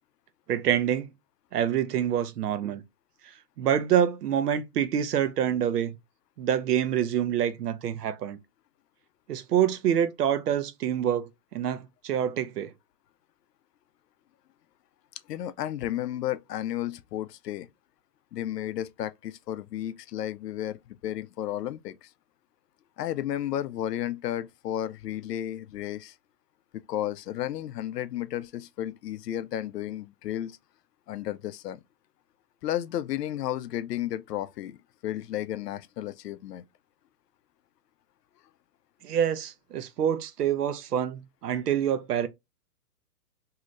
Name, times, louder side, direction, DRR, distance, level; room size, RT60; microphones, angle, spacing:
voice 1, 0.5-1.1 1.5-2.8 3.6-6.0 6.4-8.4 9.3-12.7 39.0-42.3, right 9 dB, 80° right, 0.7 m, -26 dB
voice 2, 15.3-17.7 18.3-22.1 23.0-26.1 26.9-30.6 31.1-31.8 32.6-34.8 35.0-36.6, left 12 dB, 85° left, 0.5 m, -33 dB
2.8 x 2.5 x 3.1 m
hypercardioid pair, 140°, 47 cm